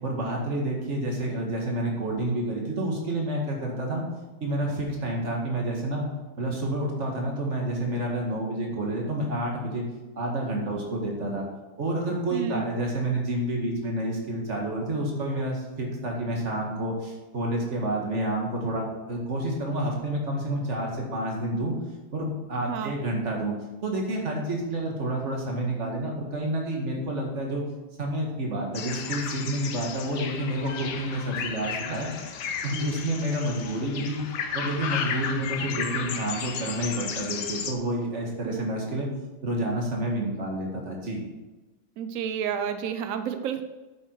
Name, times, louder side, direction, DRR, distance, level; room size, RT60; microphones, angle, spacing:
voice 1, 0.0-4.0 4.4-6.1 6.4-9.9 10.1-11.4 11.8-21.7 22.1-23.5 23.8-27.6 28.0-32.1 32.6-34.2 34.5-39.1 39.4-41.2, right 1 dB, 35° right, 0 dB, 2.1 m, -29 dB
voice 2, 12.3-12.6 22.6-22.9 38.4-38.7 42.0-43.6, right 8 dB, 80° right, 9 dB, 0.7 m, -31 dB
sound 1, 28.7-37.7, left 7 dB, 65° left, 1.3 m, -34 dB
8.9 x 7.2 x 4.7 m, 1.2 s
omnidirectional pair, 2.1 m